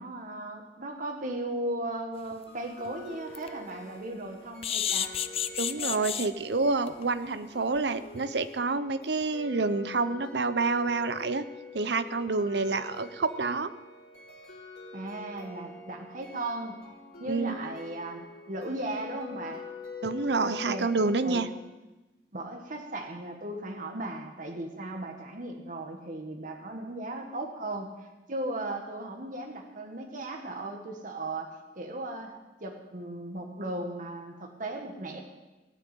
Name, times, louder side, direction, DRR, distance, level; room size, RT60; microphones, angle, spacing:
voice 1, 0.0-5.1 14.9-16.7 17.2-19.7 20.4-21.0 21.2-21.5 22.3-27.9 28.3-35.2, right 1 dB, 50° right, 3 dB, 1.5 m, -37 dB
sound 1, 2.3-2.4 2.9-3.0 3.3-3.5 4.6-6.3 6.9-7.0 7.3-7.4 7.8-7.9, left 9 dB, 35° left, 0.5 m, -30 dB
sound 2, 2.5-21.6, left 4 dB, 60° left, 3.3 m, -45 dB
voice 2, 5.6-11.4 11.7-13.7 17.3-17.5 20.0-21.5, right 3 dB, 70° right, 13 dB, 0.7 m, -28 dB
18.0 x 6.2 x 9.2 m, 1.1 s
head